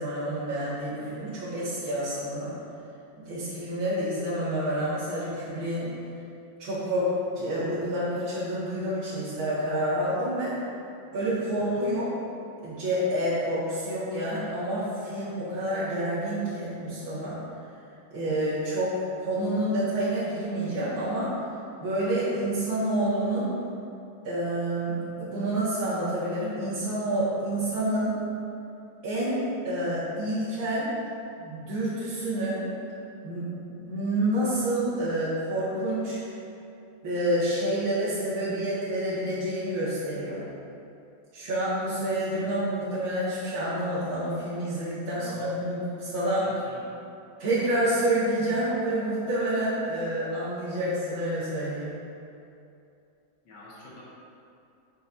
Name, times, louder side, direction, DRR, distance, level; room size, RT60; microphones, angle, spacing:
voice 1, 0.0-2.6 3.2-5.9 6.6-10.5 11.1-12.1 12.6-17.4 18.1-21.3 21.8-23.5 24.2-28.2 29.0-31.0 31.4-32.6 33.2-33.5 33.7-36.2 37.0-40.4 41.3-46.4 47.4-52.0, right 1 dB, 75° right, -13 dB, 2.8 m, -28 dB
voice 2, 45.2-45.5 46.4-46.8 53.4-54.0, left 2 dB, 60° left, -6 dB, 2.1 m, -46 dB
10.0 x 6.3 x 2.7 m, 2.7 s
omnidirectional pair, 2.2 m